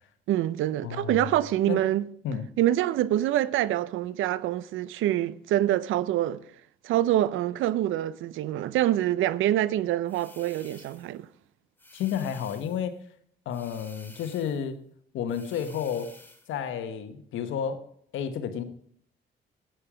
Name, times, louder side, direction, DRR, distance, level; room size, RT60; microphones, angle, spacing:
voice 1, 0.3-2.1 2.6-6.4 6.8-11.3, right 13 dB, 85° right, 0.6 m, -25 dB
voice 2, 0.8-1.3 1.7-1.8 2.2-2.5 11.9-13.0 13.4-14.8 15.1-16.1 16.5-17.9 18.1-18.6, left 8 dB, 85° left, 1.3 m, -31 dB
sound 1, 10.1-11.2 11.8-12.9 13.5-14.7 15.3-16.5, left 2 dB, 10° left, 2.2 m, -52 dB
12.5 x 9.0 x 5.0 m
cardioid pair, 90°, 20 cm